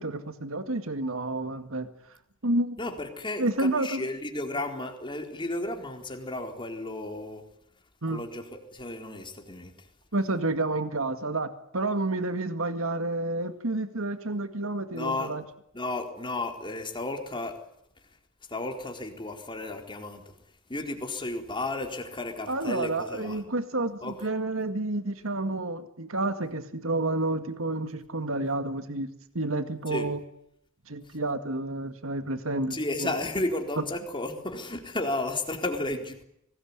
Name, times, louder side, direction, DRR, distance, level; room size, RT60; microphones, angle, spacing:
voice 1, 0.0-1.9 2.4-2.8 3.4-4.0 8.0-8.2 10.1-15.4 22.5-30.2 30.9-33.2 33.8-33.9, right 2 dB, 75° right, 9 dB, 2.0 m, -30 dB
voice 2, 2.8-7.4 8.1-9.7 14.9-15.3 15.7-17.5 18.5-20.2 20.7-23.4 24.0-24.1 29.9-30.1 32.7-36.2, left 2 dB, 25° left, 4 dB, 4.1 m, -33 dB
25.0 x 19.5 x 9.7 m, 0.77 s
head